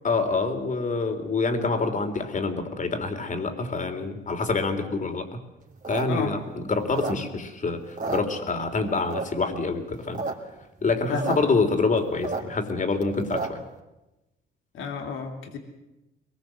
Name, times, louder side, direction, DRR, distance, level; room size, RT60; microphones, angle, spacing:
voice 1, 0.0-5.3 5.9-10.2 10.8-13.6, left 3 dB, 40° left, 7 dB, 3.5 m, -26 dB
sound 1, 5.7-7.5 7.8-8.7 9.1-9.5 9.9-10.3 10.6-10.7 10.8-11.4 11.7-13.7, right 3 dB, 40° right, 3.2 m, -32 dB
voice 2, 11.1-11.6 14.7-15.6, left 5 dB, 85° left, 3 dB, 3.0 m, -31 dB
22.5 x 20.5 x 7.7 m, 0.99 s
cardioid pair, 90°, 20 cm